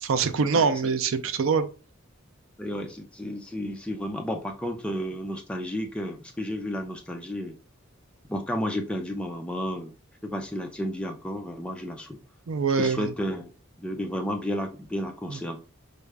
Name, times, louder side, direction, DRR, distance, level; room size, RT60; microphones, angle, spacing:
voice 1, 0.0-1.7 12.5-13.1 15.3-15.4, right 5 dB, 70° right, 10 dB, 0.4 m, -24 dB
voice 2, 0.5-0.9 2.6-7.5 8.3-9.9 10.2-12.2 12.8-13.5 13.8-15.6, equal, 5° left, 3 dB, 0.4 m, -32 dB
5.3 x 2.4 x 3.3 m, 0.36 s
head